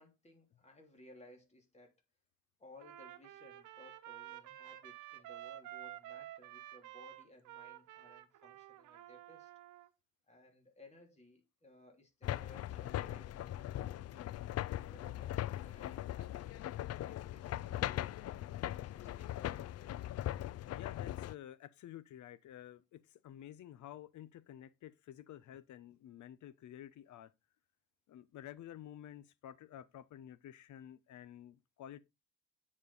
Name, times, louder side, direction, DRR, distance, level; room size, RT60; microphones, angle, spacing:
voice 1, 0.0-1.9 2.6-9.5 10.3-14.3 14.8-16.7 17.0-20.3, left 1 dB, 20° left, 3.2 m, -61 dB
Trumpet, 2.8-9.9, right 13 dB, 80° right, 1.0 m, -51 dB
sound 1, 12.2-21.3, left 13 dB, 55° left, 0.5 m, -40 dB
voice 2, 20.7-27.3 28.1-32.0, left 11 dB, 70° left, 0.9 m, -51 dB
9.5 x 5.5 x 4.1 m
cardioid pair, 90°, 30 cm